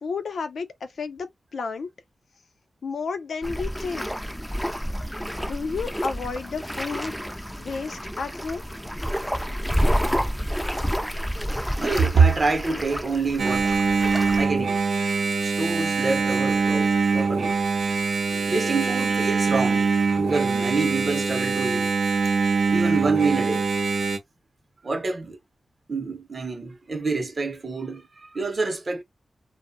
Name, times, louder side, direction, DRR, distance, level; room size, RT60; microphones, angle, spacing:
voice 1, 0.0-1.9 2.8-4.1 5.4-7.1 7.6-8.6, left 4 dB, 75° left, 0.5 m, -32 dB
sound 1, 3.4-14.4, equal, 5° left, 0.4 m, -29 dB
voice 2, 11.6-13.8 14.4-14.8 15.4-17.6 18.3-22.2 22.7-23.6 24.8-25.4 25.9-29.0, right 4 dB, 40° right, 0.6 m, -26 dB
Engine, 13.4-24.2, right 4 dB, 90° right, 0.6 m, -23 dB
2.6 x 2.0 x 2.5 m
wide cardioid pair, 150°, 0 cm